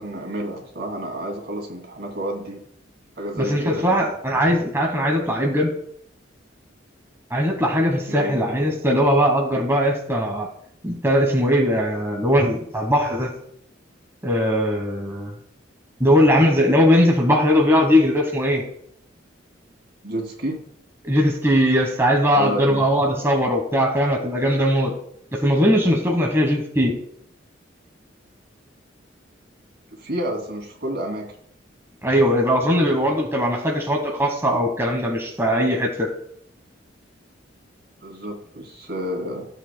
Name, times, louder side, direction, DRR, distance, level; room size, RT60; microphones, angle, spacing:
voice 1, 0.0-2.6 3.2-4.0 8.1-8.4 20.0-20.6 22.3-22.8 29.9-31.3 38.0-39.5, right 1 dB, 60° right, 1 dB, 2.6 m, -30 dB
voice 2, 3.4-5.7 7.3-10.5 10.8-13.3 14.2-15.3 16.0-18.6 21.0-24.9 25.3-26.9 32.0-36.1, equal, 15° right, 1 dB, 1.2 m, -20 dB
15.5 x 7.7 x 2.2 m, 0.68 s
head